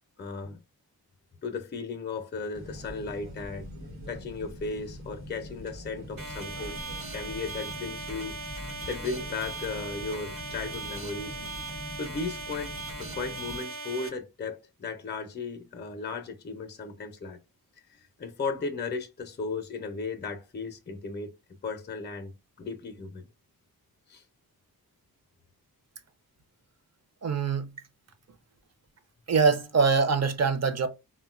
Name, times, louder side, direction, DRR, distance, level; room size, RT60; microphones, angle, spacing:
voice 1, 0.2-0.6 1.4-3.7 4.1-6.8 7.1-8.3 8.9-11.4 12.0-12.7 13.0-17.4 17.9-21.3 21.6-22.3 22.6-23.3 24.1-24.2, left 4 dB, 30° left, 0.5 m, -35 dB
sound 1, 2.5-13.6, equal, 85° right, 1.0 m, -43 dB
sound 2, 6.2-14.1, right 3 dB, 60° right, 1.0 m, -39 dB
voice 2, 27.2-27.7 29.3-30.9, right 5 dB, 45° right, 0.6 m, -24 dB
3.6 x 2.1 x 2.3 m
wide cardioid pair, 95°, 37 cm